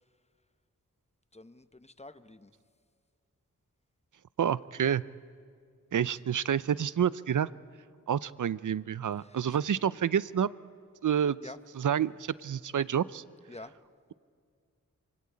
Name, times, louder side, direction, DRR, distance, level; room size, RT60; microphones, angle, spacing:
voice 1, 1.3-2.5 9.2-9.6 11.4-11.6 13.5-13.7, left 2 dB, 20° left, 12 dB, 1.0 m, -48 dB
voice 2, 4.4-5.0 5.9-7.5 8.1-10.5 11.0-11.4 11.8-13.2, right 8 dB, 70° right, 19 dB, 0.6 m, -28 dB
27.0 x 23.5 x 8.7 m, 2.1 s
cardioid pair, 55°, 32 cm